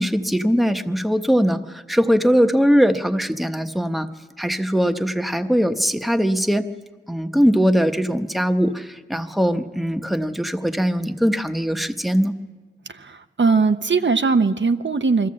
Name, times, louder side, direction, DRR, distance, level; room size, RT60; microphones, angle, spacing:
voice 1, 0.0-4.1 4.4-6.7 7.1-12.3, equal, ahead, 8 dB, 0.9 m, -20 dB
voice 2, 12.9-15.3, right 4 dB, 70° right, 8 dB, 0.7 m, -20 dB
24.0 x 14.0 x 7.6 m, 1.3 s
wide cardioid pair, 50°, 19 cm